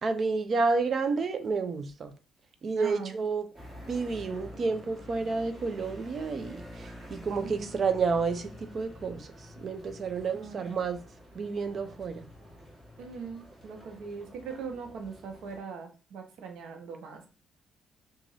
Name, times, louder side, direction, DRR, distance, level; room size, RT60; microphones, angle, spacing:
voice 1, 0.0-2.1 2.6-3.5 3.9-9.3 9.6-11.0 11.3-12.3, right 4 dB, 50° right, 0.5 m, -30 dB
voice 2, 2.8-3.2 7.4-7.7 10.3-10.8 13.0-17.3, right 5 dB, 80° right, 0.8 m, -41 dB
sound 1, 3.5-15.6, equal, 20° right, 1.6 m, -48 dB
3.0 x 2.5 x 4.0 m
cardioid pair, 90°, 0 cm